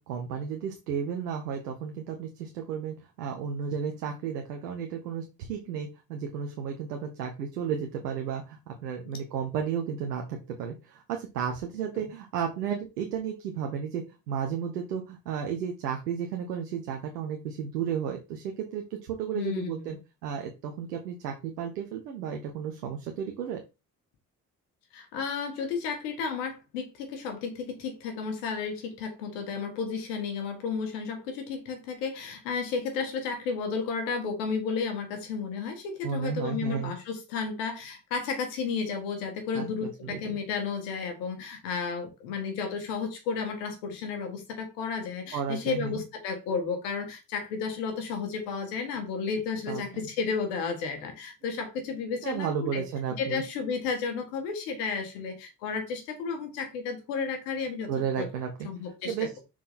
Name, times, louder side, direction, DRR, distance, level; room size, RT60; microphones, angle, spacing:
voice 1, 0.1-20.0 20.2-23.6 36.0-36.9 39.5-40.2 45.3-46.0 49.7-49.8 52.2-53.4 57.9-58.7 59.0-59.3, right 7 dB, 85° right, 1.0 m, -33 dB
voice 2, 19.3-20.0 24.9-52.8 53.2-57.9 58.2-58.3 58.6-59.4, left 5 dB, 80° left, 1.8 m, -33 dB
5.9 x 4.6 x 4.2 m
hypercardioid pair, 40°, 46 cm